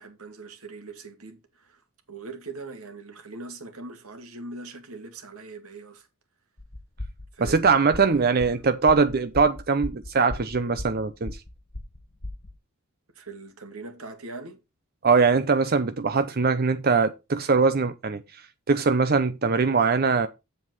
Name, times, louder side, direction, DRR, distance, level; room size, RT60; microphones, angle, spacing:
voice 1, 0.0-6.1 7.3-7.6 8.0-8.6 13.1-14.6, right 3 dB, 80° right, 2.4 m, -41 dB
sound 1, 6.6-12.5, left 1 dB, 50° left, 1.7 m, -38 dB
voice 2, 7.4-11.4 15.0-18.4 18.7-20.3, right 4 dB, 45° right, 0.6 m, -22 dB
7.7 x 7.6 x 4.0 m
head